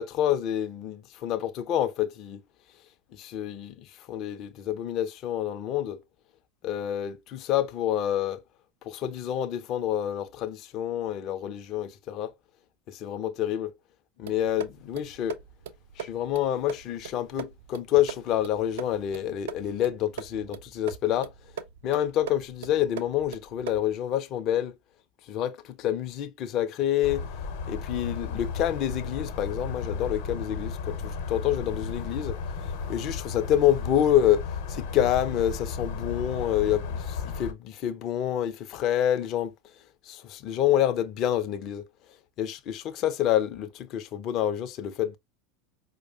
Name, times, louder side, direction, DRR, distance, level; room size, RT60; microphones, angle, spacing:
voice 1, 0.0-2.4 3.1-3.8 4.1-6.0 6.6-8.4 8.9-12.3 12.9-13.7 14.2-15.4 16.0-21.3 21.8-24.7 25.3-27.2 27.7-32.4 32.9-39.5 40.1-41.8 42.4-45.2, left 11 dB, 45° left, 0.5 m, -27 dB
sound 1, 14.2-24.0, right 7 dB, 65° right, 0.4 m, -41 dB
sound 2, 27.0-37.5, left 5 dB, 60° left, 0.8 m, -34 dB
4.6 x 2.1 x 2.6 m
figure-of-eight pair, 80°, 0 cm